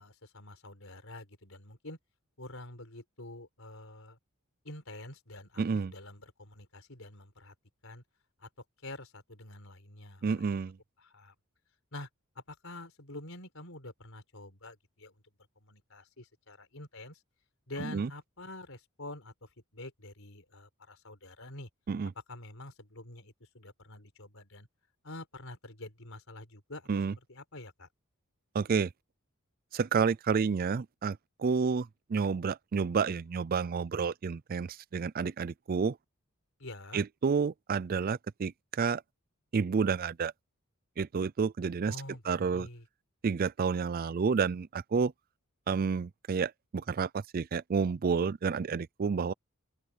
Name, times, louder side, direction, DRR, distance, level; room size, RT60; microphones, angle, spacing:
voice 1, 0.0-2.0 2.4-4.2 4.6-5.6 5.9-7.5 7.8-8.0 8.4-8.5 8.8-10.5 11.0-11.3 11.9-12.1 12.3-15.1 15.6-17.2 17.7-21.7 22.3-24.7 25.0-26.9 27.3-27.9 36.6-37.0 41.9-42.9, left 2 dB, 65° left, 4.9 m, -47 dB
voice 2, 5.6-5.9 10.2-10.7 17.8-18.1 21.9-22.1 26.9-27.1 28.5-28.9 29.7-36.0 36.9-39.0 39.5-40.3 41.0-42.0 42.3-42.7 43.2-45.1 45.7-49.3, right 5 dB, 40° right, 0.4 m, -30 dB
open air
head